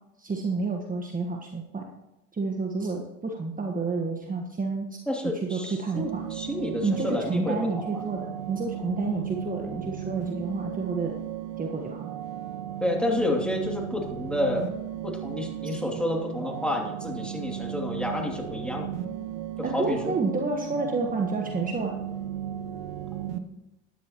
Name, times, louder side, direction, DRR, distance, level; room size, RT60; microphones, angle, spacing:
voice 1, 0.2-1.9 2.3-6.2 6.8-11.1 11.6-12.0 15.6-15.7 19.6-21.9, right 3 dB, 25° right, 2 dB, 1.4 m, -30 dB
voice 2, 5.1-8.0 12.8-14.7 15.0-18.9 19.7-20.0, left 1 dB, 5° left, 0 dB, 2.7 m, -30 dB
sound 1, 5.9-23.4, right 11 dB, 70° right, 0.9 m, -35 dB
13.0 x 10.0 x 3.0 m, 0.92 s
hypercardioid pair, 75°, 34 cm